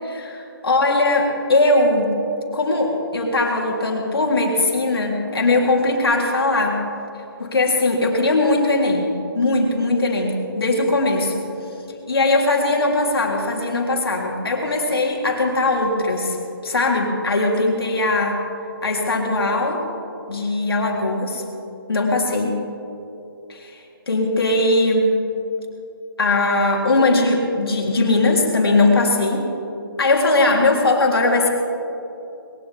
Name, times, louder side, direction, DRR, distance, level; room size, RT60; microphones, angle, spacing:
voice 1, 0.0-2.2 2.5-6.8 7.4-11.4 12.1-16.4 16.6-18.4 18.8-19.8 20.3-21.4 21.9-22.6 23.5-25.2 26.2-29.5 30.0-31.5, left 2 dB, 80° left, 0 dB, 3.3 m, -20 dB
21.0 x 16.5 x 3.5 m, 2.9 s
hypercardioid pair, 165°, 12 cm